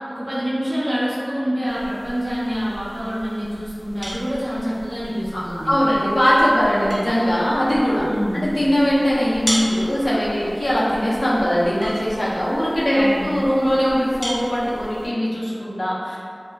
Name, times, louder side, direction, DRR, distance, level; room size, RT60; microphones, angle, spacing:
voice 1, 0.1-5.8 8.0-8.5 12.9-13.4, equal, 75° right, -13 dB, 0.9 m, -26 dB
sound 1, 1.6-15.1, equal, ahead, 0.7 m, -36 dB
voice 2, 5.3-8.1 8.3-16.2, equal, 90° left, -8 dB, 0.5 m, -20 dB
2.8 x 2.0 x 2.2 m, 2.3 s
wide cardioid pair, 45°, 0 cm